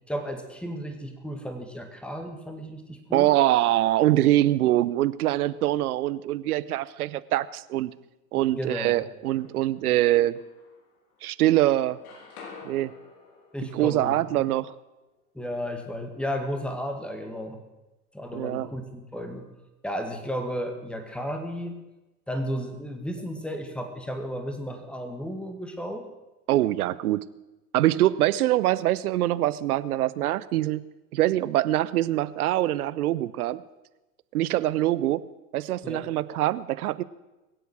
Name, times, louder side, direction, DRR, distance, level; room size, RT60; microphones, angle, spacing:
voice 1, 0.1-3.3 8.3-9.1 13.5-14.4 15.3-17.6 18.1-19.5 19.8-21.8 22.3-26.1 35.8-36.1, equal, ahead, 6 dB, 2.0 m, -33 dB
voice 2, 3.1-7.9 8.3-10.4 11.2-12.0 12.6-12.9 13.7-14.7 18.3-18.7 26.5-27.3 27.7-30.8 31.1-33.6 34.3-35.2 35.5-37.0, right 14 dB, 65° right, 18 dB, 0.8 m, -24 dB
sound 1, 9.0-9.8 10.3-11.4 11.6-15.6, left 5 dB, 65° left, 3.5 m, -50 dB
22.5 x 8.0 x 6.4 m, 1.0 s
hypercardioid pair, 95°, 48 cm